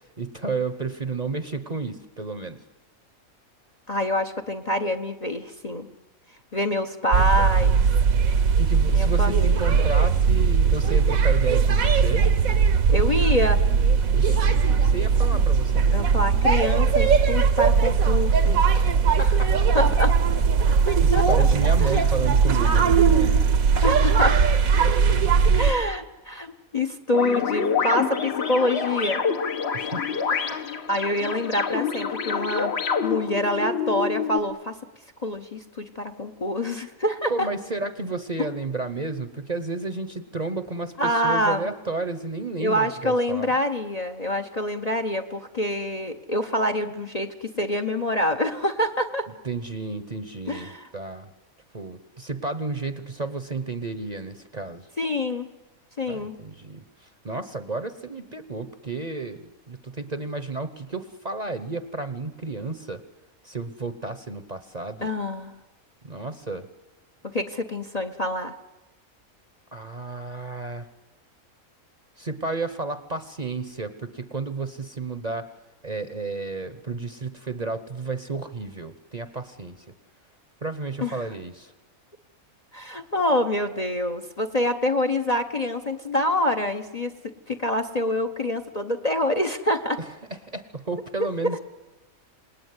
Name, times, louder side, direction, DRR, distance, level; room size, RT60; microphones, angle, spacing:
voice 1, 0.2-2.6 8.6-12.3 14.1-16.1 18.8-19.5 20.7-23.6 29.7-30.6 37.3-43.5 49.4-51.3 51.7-54.9 56.1-63.0 63.4-65.1 66.0-66.7 69.7-70.9 72.2-75.5 75.8-79.8 80.6-81.7 90.0-90.1 90.4-91.6, right 3 dB, 35° right, 11 dB, 1.0 m, -32 dB
voice 2, 3.9-5.9 6.5-7.8 8.9-9.9 12.9-13.6 15.9-18.6 19.2-19.3 19.7-20.2 20.9-21.5 21.8-22.0 23.8-24.4 25.1-25.2 25.6-29.2 30.9-32.7 33.0-34.8 35.2-37.5 38.4-38.5 41.0-41.7 42.6-49.3 50.5-50.9 55.0-55.5 56.0-56.4 65.0-65.5 67.3-68.6 81.0-81.2 82.7-87.1 87.5-90.0, left 1 dB, 30° left, 9 dB, 0.9 m, -26 dB
sound 1, 7.1-25.7, right 6 dB, 75° right, 1.6 m, -19 dB
sound 2, 27.1-34.4, left 6 dB, 50° left, 1.3 m, -27 dB
27.0 x 19.0 x 9.7 m, 1.1 s
omnidirectional pair, 1.5 m